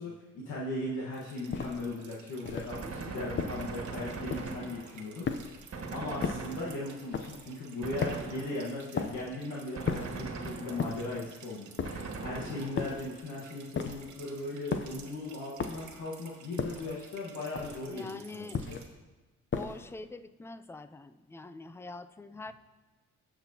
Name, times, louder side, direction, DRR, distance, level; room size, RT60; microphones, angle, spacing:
voice 1, 0.0-5.3 5.9-11.7 12.2-18.8, left 2 dB, 80° left, -5 dB, 1.5 m, -38 dB
sound 1, 1.1-18.9, right 6 dB, 70° right, 1.3 m, -54 dB
sound 2, 1.5-1.9 2.4-2.8 3.4-3.8 4.3-4.7 5.2-5.7 6.2-6.6 7.1-7.5 8.0-8.4 9.0-9.3 9.9-10.3 10.8-11.2 11.8-12.2 12.8-13.2 13.8-14.2 14.7-15.1 15.6-16.0 16.6-17.0 17.6-18.0 18.5-19.0 19.5-19.9, left 5 dB, 40° left, 0.7 m, -35 dB
Gunshot gunfire, 2.7-5.2 5.7-7.1 7.8-8.8 9.7-11.1 11.8-13.1, right 4 dB, 50° right, 1.6 m, -40 dB
voice 2, 2.8-3.3 17.9-18.6 19.5-22.5, left 3 dB, 10° left, 12 dB, 0.4 m, -44 dB
16.5 x 6.1 x 2.9 m, 1.2 s
cardioid pair, 90°, 30 cm